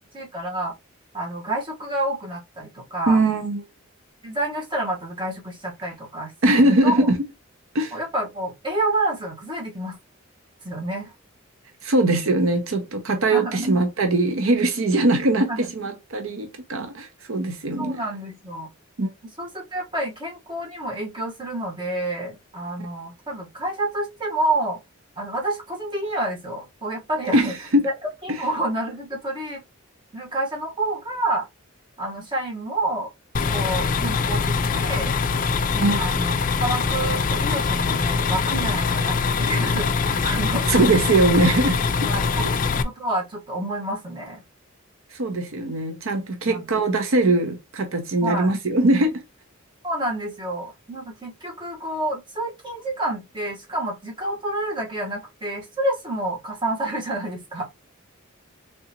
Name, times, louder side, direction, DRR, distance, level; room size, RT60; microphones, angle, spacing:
voice 1, 0.1-0.7 1.1-3.2 4.2-7.1 7.9-10.0 10.6-11.1 13.3-13.8 15.5-15.7 16.7-16.9 17.8-18.7 19.2-24.8 25.2-27.5 27.8-27.9 28.2-29.6 30.1-31.5 32.0-33.1 33.5-35.2 36.0-36.3 36.6-40.7 42.0-42.5 42.8-44.4 46.5-46.6 48.2-48.5 49.8-57.7, right 1 dB, 20° right, 1.3 m, -29 dB
voice 2, 3.1-3.6 6.4-7.1 7.7-8.0 11.8-18.0 19.0-19.1 27.3-27.9 28.3-28.4 35.8-36.1 40.7-41.8 42.4-42.5 45.1-49.2, right 2 dB, 70° right, 0.7 m, -21 dB
sound 1, 33.3-42.8, left 5 dB, 40° left, 0.3 m, -23 dB
3.8 x 3.4 x 2.9 m
head